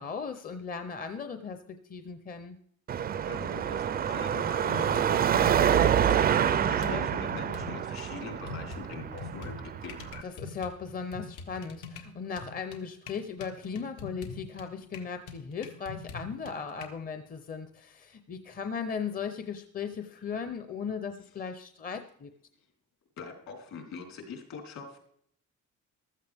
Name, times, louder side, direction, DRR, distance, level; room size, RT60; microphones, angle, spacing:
voice 1, 0.0-2.6 6.8-7.1 10.2-22.3, left 6 dB, 30° left, 8 dB, 0.7 m, -37 dB
Car passing by / Traffic noise roadway noise / Engine, 2.9-10.2, right 9 dB, 30° right, 0.4 m, -27 dB
voice 2, 3.2-10.3 20.2-20.4 21.2-21.3 22.6-22.7 23.2-25.0, left 5 dB, 65° left, 1 dB, 4.0 m, -43 dB
sound 1, 4.7-6.3 6.6-8.1 8.5-16.9, left 4 dB, 85° left, 1.9 m, -44 dB
15.0 x 13.0 x 3.5 m, 0.66 s
cardioid pair, 150°, 30 cm